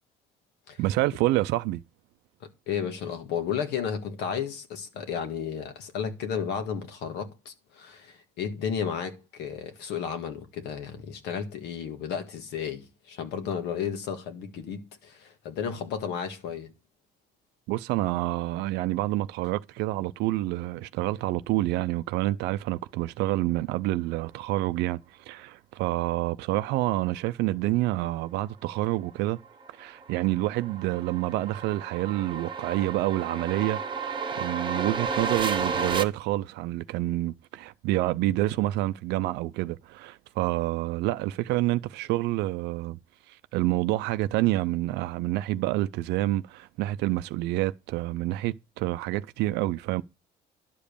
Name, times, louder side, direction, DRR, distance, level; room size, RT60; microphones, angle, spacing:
voice 1, 0.8-1.8 17.7-25.0 25.3-29.4 29.8-43.0 43.3-50.0, right 17 dB, 90° right, 0.5 m, -28 dB
voice 2, 2.7-16.7, left 7 dB, 80° left, 1.8 m, -33 dB
sound 1, 29.5-36.0, right 5 dB, 30° right, 1.0 m, -32 dB
11.0 x 5.2 x 6.8 m
cardioid pair, 110°, 17 cm